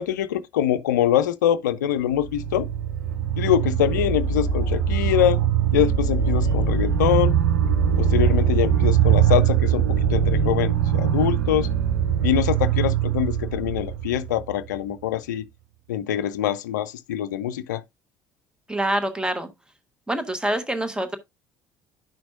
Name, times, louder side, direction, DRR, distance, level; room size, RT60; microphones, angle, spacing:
voice 1, 0.0-2.7 3.3-5.4 5.7-7.3 8.0-9.8 10.1-11.7 12.2-15.4 15.9-17.8, left 11 dB, 70° left, 0.4 m, -24 dB
sound 1, 2.0-14.8, right 8 dB, 70° right, 0.8 m, -22 dB
voice 2, 18.7-19.5 20.1-21.2, right 1 dB, 10° right, 1.4 m, -25 dB
10.0 x 6.0 x 2.5 m
figure-of-eight pair, 55°, 10 cm